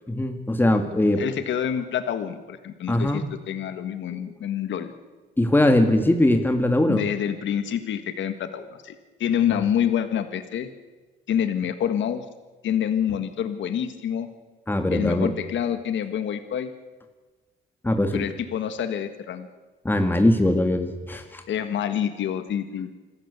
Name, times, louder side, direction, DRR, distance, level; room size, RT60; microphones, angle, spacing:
voice 1, 0.1-1.2 2.9-3.2 4.1-4.2 5.4-7.0 9.5-9.6 14.7-15.3 17.8-18.3 19.8-21.4, left 1 dB, 10° left, 5 dB, 2.1 m, -21 dB
voice 2, 1.2-4.9 6.9-10.7 11.3-12.2 12.6-14.3 14.9-16.7 18.1-19.5 21.5-23.0, left 9 dB, 70° left, 9 dB, 1.6 m, -27 dB
26.5 x 14.0 x 8.2 m, 1.3 s
cardioid pair, 90°, 20 cm